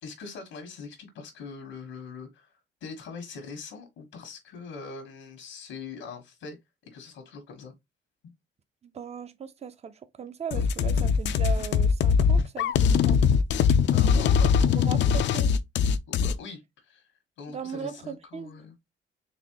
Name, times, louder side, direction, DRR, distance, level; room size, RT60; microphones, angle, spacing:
voice 1, 0.0-6.6 6.8-7.7 8.2-8.3 13.9-15.5 16.1-17.1 17.4-18.8, left 5 dB, 85° left, 1.3 m, -42 dB
voice 2, 8.8-13.2 14.7-15.5 17.5-18.6, right 7 dB, 30° right, 0.6 m, -38 dB
sound 1, 10.5-16.3, left 6 dB, 65° left, 0.5 m, -21 dB
4.1 x 3.1 x 2.9 m
cardioid pair, 90°, 20 cm